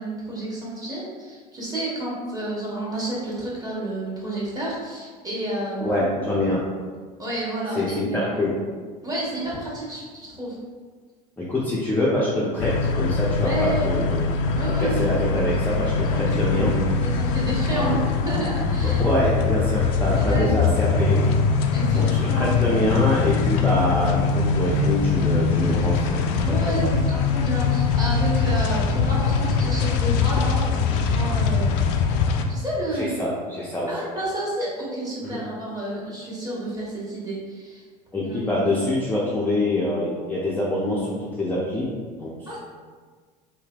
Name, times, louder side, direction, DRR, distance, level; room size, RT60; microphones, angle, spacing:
voice 1, 0.0-6.0 7.2-8.4 9.0-10.5 13.4-14.0 14.6-15.3 16.0-16.6 17.0-19.0 20.1-20.5 21.7-22.5 26.4-31.8 32.5-33.1 33.9-37.8 38.2-38.5 42.5-42.6, right 1 dB, 20° right, -6 dB, 1.3 m, -30 dB
voice 2, 5.8-6.6 7.7-8.5 11.4-14.2 14.8-16.7 17.7-18.0 19.0-21.2 21.9-26.2 26.6-26.9 32.9-33.9 35.2-35.4 38.1-41.9 42.2-42.3, left 1 dB, 10° left, -7 dB, 0.6 m, -25 dB
sound 1, 12.6-32.4, left 4 dB, 60° left, 0.4 m, -22 dB
3.2 x 2.8 x 2.3 m, 1.5 s
hypercardioid pair, 80°, 21 cm